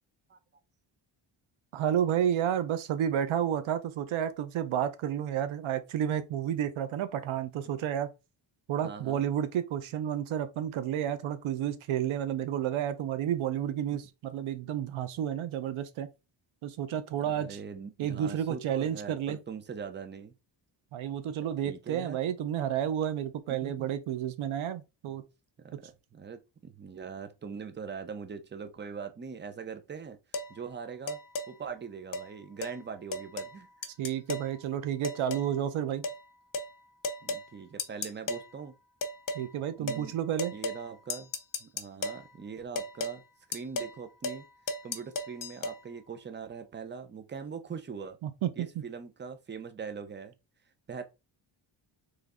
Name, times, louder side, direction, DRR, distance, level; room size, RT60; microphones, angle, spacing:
voice 1, 1.7-8.1 8.7-16.1 16.6-17.6 18.0-19.4 20.9-25.2 34.0-36.1 39.3-40.5 48.2-48.8, right 10 dB, 90° right, 0.8 m, -31 dB
voice 2, 8.8-9.2 17.2-20.3 21.6-22.2 23.5-23.9 25.6-30.2 30.5-31.2 31.5-33.7 37.2-38.7 39.8-40.1 40.5-41.3 41.6-43.2 43.5-44.5 44.8-48.2 48.6-50.3 50.9-51.0, right 6 dB, 25° right, 0.6 m, -41 dB
sound 1, 30.3-30.5 31.1-31.5 32.1-32.3 32.6-32.8 33.1-33.6 33.8-34.5 35.0-35.5 36.0-36.2 36.5-36.7 37.0-37.5 37.8-38.5 39.0-39.5 39.9-40.1 40.4-40.8 41.1-42.2 42.8-43.2 43.5-44.0 44.2-44.4 44.7-45.8, left 2 dB, 45° left, 0.6 m, -35 dB
3.8 x 3.3 x 3.5 m
wide cardioid pair, 165°, 47 cm